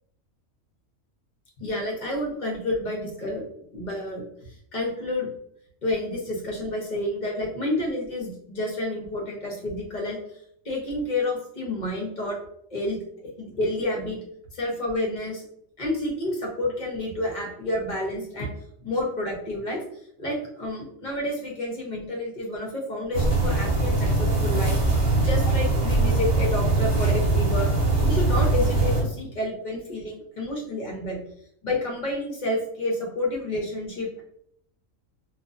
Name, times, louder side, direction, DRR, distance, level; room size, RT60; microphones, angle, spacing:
voice 1, 1.6-3.4 3.7-4.2 4.7-5.3 5.8-10.2 10.6-12.4 12.7-14.2 14.5-15.4 15.8-18.5 18.8-19.8 20.2-24.8 25.2-27.7 28.0-31.2 31.6-34.2, left 1 dB, 40° left, -3 dB, 0.8 m, -29 dB
sound 1, 23.1-29.0, right 2 dB, 40° right, 0.8 m, -22 dB
3.8 x 2.3 x 2.5 m, 0.70 s
omnidirectional pair, 1.4 m